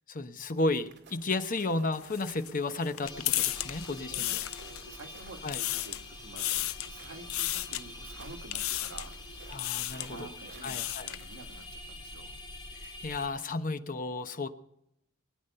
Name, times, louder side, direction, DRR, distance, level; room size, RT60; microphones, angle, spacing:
voice 1, 0.1-4.4 5.4-5.6 9.5-10.3 10.6-11.1 12.8-14.5, left 2 dB, 40° left, 9 dB, 1.0 m, -33 dB
sound 1, 0.6-10.6, right 4 dB, 55° right, 2.2 m, -56 dB
sound 2, 1.9-5.0 5.3-6.1 6.4-6.9 7.3-7.8 8.5-9.1 9.5-10.1 10.5-11.2, left 15 dB, 75° left, 0.5 m, -33 dB
sound 3, 3.0-13.3, left 1 dB, 25° left, 6.9 m, -46 dB
voice 2, 4.0-9.1 10.1-12.4, right 3 dB, 80° right, 3 dB, 2.0 m, -49 dB
22.0 x 9.5 x 5.6 m, 0.78 s
head